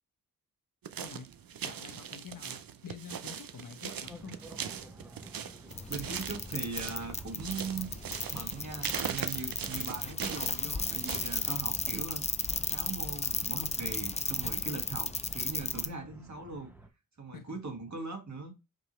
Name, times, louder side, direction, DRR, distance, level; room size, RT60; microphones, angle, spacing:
sound 1, 0.8-11.7, right 8 dB, 85° right, 0.6 m, -41 dB
voice 1, 1.0-1.3 1.6-4.4 17.3-17.6, left 7 dB, 70° left, 1.0 m, -47 dB
sound 2, 4.0-16.9, right 2 dB, 5° right, 1.0 m, -53 dB
sound 3, 5.7-15.9, left 3 dB, 20° left, 0.5 m, -35 dB
voice 2, 5.9-7.9 8.3-12.4 12.7-16.7 17.2-18.5, right 3 dB, 55° right, 1.7 m, -40 dB
5.2 x 2.8 x 3.0 m
cardioid pair, 50°, 34 cm